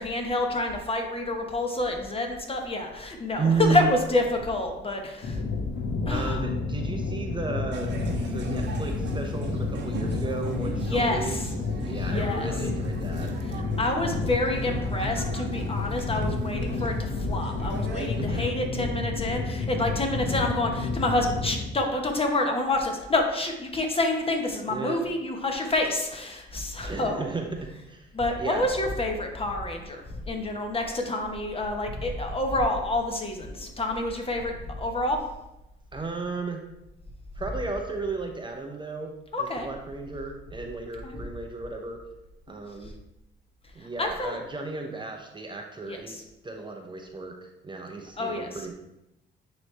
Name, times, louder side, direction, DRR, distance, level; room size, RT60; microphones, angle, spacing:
voice 1, 0.0-5.4 6.1-6.4 10.7-11.5 11.8-12.5 13.4-27.3 28.1-35.2 39.3-39.7 41.0-41.2 44.0-44.4 45.9-46.2 48.2-48.6, left 2 dB, 30° left, 3 dB, 1.0 m, -28 dB
voice 2, 3.4-4.0 6.1-11.4 11.8-13.3 18.2-18.5 24.7-25.0 26.9-28.1 28.4-28.7 35.9-36.6 37.4-42.0 42.5-42.9 43.8-48.7, right 4 dB, 25° right, 3 dB, 0.7 m, -33 dB
sound 1, 5.2-21.6, left 3 dB, 60° left, 1.0 m, -30 dB
sound 2, 7.7-18.5, right 4 dB, 65° right, 1.0 m, -38 dB
9.2 x 3.1 x 3.3 m, 0.91 s
cardioid pair, 90°, 20 cm